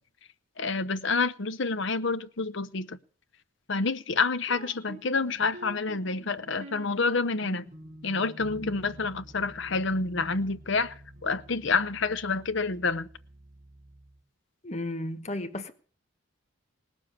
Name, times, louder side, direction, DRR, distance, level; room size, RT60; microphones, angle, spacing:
voice 1, 0.6-3.0 3.7-7.6 8.0-10.9 11.2-13.1, left 4 dB, 60° left, 0.9 m, -28 dB
sound 1, 4.4-14.2, right 1 dB, 40° right, 2.2 m, -48 dB
voice 2, 14.6-15.7, left 1 dB, 30° left, 1.1 m, -33 dB
19.0 x 7.2 x 8.7 m
head